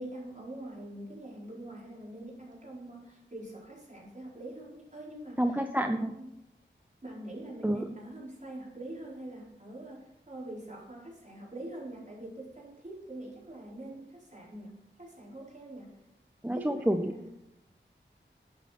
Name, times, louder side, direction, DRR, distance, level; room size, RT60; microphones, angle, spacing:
voice 1, 0.0-5.6 6.1-6.3 7.0-15.9 16.5-17.3, right 1 dB, 40° right, -5 dB, 4.7 m, -44 dB
voice 2, 5.4-6.1 7.6-7.8 16.4-17.3, right 1 dB, 10° right, 6 dB, 0.6 m, -29 dB
11.0 x 8.7 x 4.2 m, 0.86 s
wide cardioid pair, 60°, 20 cm